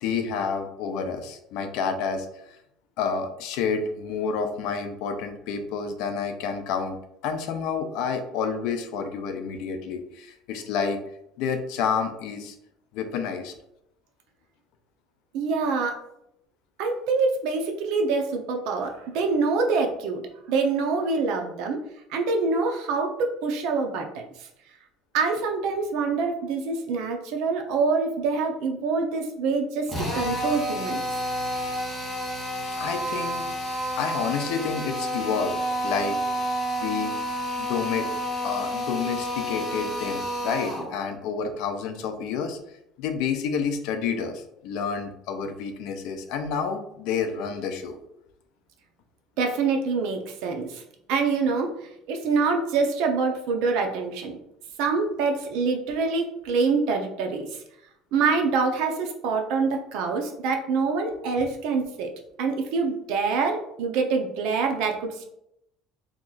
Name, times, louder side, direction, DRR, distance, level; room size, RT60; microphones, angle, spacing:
voice 1, 0.0-2.6 3.0-7.0 7.2-11.0 11.4-12.6 12.9-13.5 32.8-33.5 34.0-36.2 36.8-37.2 37.6-38.1 38.4-42.6 43.0-48.0, left 6 dB, 65° left, 7 dB, 0.5 m, -29 dB
voice 2, 15.3-16.0 16.8-20.2 20.5-21.8 22.1-24.5 25.1-31.0 49.4-50.8 51.1-54.4 54.8-57.5 58.1-62.1 62.4-65.3, right 4 dB, 70° right, 3 dB, 0.6 m, -25 dB
Drill, 29.9-40.9, equal, 10° left, 0.9 m, -30 dB
2.9 x 2.4 x 3.9 m, 0.78 s
cardioid pair, 165°, 0 cm